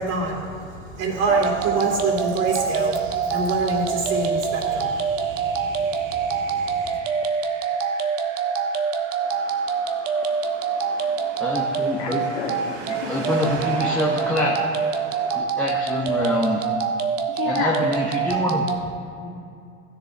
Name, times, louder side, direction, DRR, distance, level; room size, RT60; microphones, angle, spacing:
voice 1, 0.0-7.0, right 3 dB, 40° right, -1 dB, 2.6 m, -27 dB
sound 1, 1.3-18.8, right 5 dB, 85° right, 1.1 m, -25 dB
sound 2, 9.2-15.4, right 3 dB, 65° right, 2.4 m, -38 dB
voice 2, 11.4-12.2 13.1-14.6 15.3-16.6 17.4-18.7, left 1 dB, 5° left, -4 dB, 1.0 m, -25 dB
voice 3, 12.0-13.1 17.3-17.8 19.2-19.3, left 5 dB, 60° left, -2 dB, 2.6 m, -30 dB
15.5 x 7.1 x 3.4 m, 2.4 s
hypercardioid pair, 110°, 38 cm